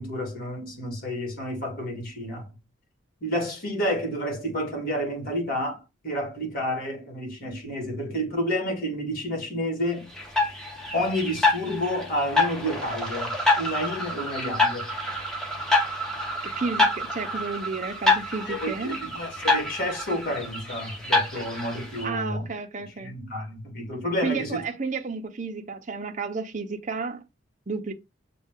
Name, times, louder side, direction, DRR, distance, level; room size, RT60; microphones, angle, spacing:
voice 1, 0.0-2.5 3.2-10.1 10.9-14.9 18.5-22.5 23.0-24.6, equal, 45° left, 1.8 m, -30 dB
sound 1, 10.2-22.1, left 2 dB, 5° left, 0.8 m, -27 dB
voice 2, 16.4-19.0 22.0-23.1 24.2-27.2 27.7-27.9, right 4 dB, 35° right, 0.6 m, -32 dB
6.3 x 2.3 x 3.6 m
head